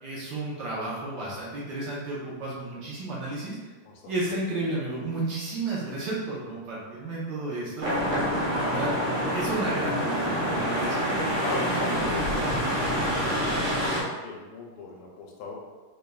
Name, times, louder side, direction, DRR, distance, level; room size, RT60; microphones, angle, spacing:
voice 1, 0.0-3.6 4.1-7.9 8.5-8.9 9.3-11.1, right 2 dB, 65° right, -6 dB, 1.2 m, -32 dB
sound 1, 7.8-14.0, equal, 80° right, 1.9 m, -26 dB
voice 2, 11.4-15.5, left 3 dB, 85° left, 0 dB, 1.6 m, -39 dB
3.9 x 3.3 x 2.2 m, 1.3 s
omnidirectional pair, 2.4 m